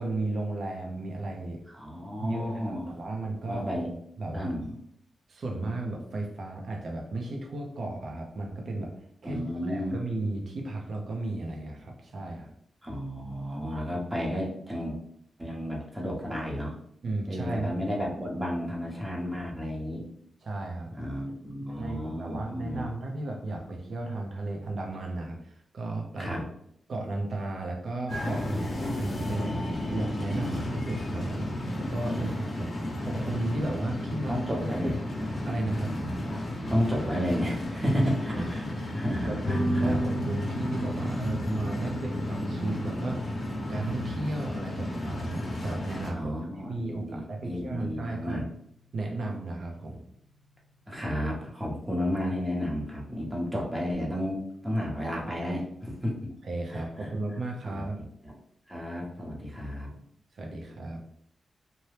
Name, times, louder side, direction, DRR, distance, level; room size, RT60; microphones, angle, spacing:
voice 1, 0.0-1.6 2.2-3.7 4.2-4.6 5.3-8.9 9.2-12.5 17.0-17.8 20.4-21.0 21.3-26.3 26.9-34.4 34.8-34.9 35.5-36.1 38.3-38.8 39.2-46.3 46.6-48.4 48.9-50.0 56.4-58.0 60.3-61.0, right 2 dB, 65° right, 1 dB, 0.7 m, -34 dB
voice 2, 1.7-3.0 3.5-3.9 4.3-4.7 9.2-10.0 12.8-15.0 15.4-16.7 17.3-20.0 21.0-22.9 26.2-26.4 30.2-30.6 32.1-32.3 34.3-34.9 36.7-38.7 38.9-40.0 46.1-48.4 50.9-56.1 56.7-57.1 57.7-57.8 58.2-58.3 58.7-60.0, equal, 15° right, -3 dB, 0.9 m, -32 dB
sound 1, 28.1-46.1, left 1 dB, 55° left, 0.7 m, -33 dB
sound 2, 39.4-50.5, equal, 90° left, 0.6 m, -36 dB
2.9 x 2.2 x 3.2 m, 0.71 s
cardioid pair, 60°, 0 cm